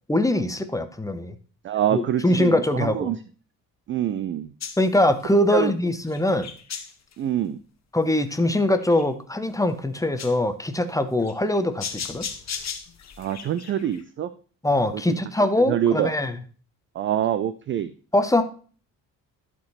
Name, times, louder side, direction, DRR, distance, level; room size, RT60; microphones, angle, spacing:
voice 1, 0.1-1.3 1.9-3.1 4.8-6.5 7.9-12.3 14.6-16.3 18.1-18.4, left 1 dB, 5° left, 9 dB, 0.8 m, -22 dB
voice 2, 1.6-3.2 3.9-4.5 5.5-5.7 7.2-7.6 13.2-14.3 14.9-15.2 15.6-16.1 16.9-17.9, right 10 dB, 25° right, 14 dB, 0.4 m, -25 dB
sound 1, 4.6-5.3 6.1-7.1 8.3-9.0 9.5-9.6 10.2-10.4 11.2-14.0, left 7 dB, 35° left, 1.1 m, -36 dB
11.5 x 4.5 x 4.2 m, 0.40 s
figure-of-eight pair, 45°, 50 cm